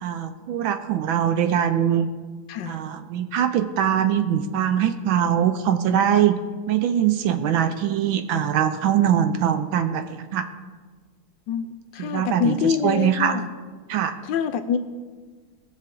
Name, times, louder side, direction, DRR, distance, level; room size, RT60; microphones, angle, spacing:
voice 1, 0.0-2.1 2.7-6.4 6.7-10.5 12.0-13.4 13.9-14.1, right 9 dB, 75° right, 9 dB, 1.3 m, -22 dB
voice 2, 11.5-13.5 14.2-14.8, left 7 dB, 75° left, 9 dB, 1.1 m, -25 dB
18.5 x 6.7 x 3.7 m, 1.5 s
omnidirectional pair, 2.3 m